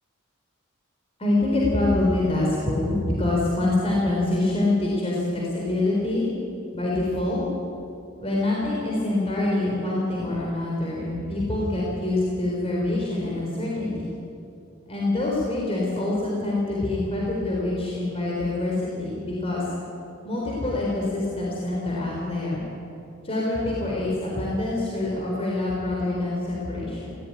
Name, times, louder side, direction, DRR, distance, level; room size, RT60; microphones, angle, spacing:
voice 1, 1.2-6.3 6.7-7.4 8.2-14.1 14.9-19.7 20.2-22.7 23.2-27.1, left 2 dB, 30° left, -4 dB, 4.2 m, -25 dB
19.5 x 16.5 x 9.9 m, 2.7 s
head